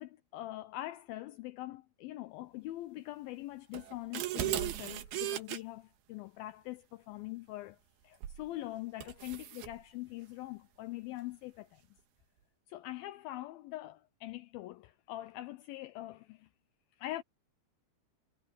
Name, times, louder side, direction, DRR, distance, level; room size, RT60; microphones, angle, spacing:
voice 1, 0.0-7.8 8.0-11.8 12.7-16.5 17.0-17.2, left 16 dB, 80° left, 2.3 m, -43 dB
sound 1, 3.7-5.6 8.2-8.5 9.0-9.7, right 13 dB, 75° right, 3.3 m, -36 dB
omnidirectional pair, 4.6 m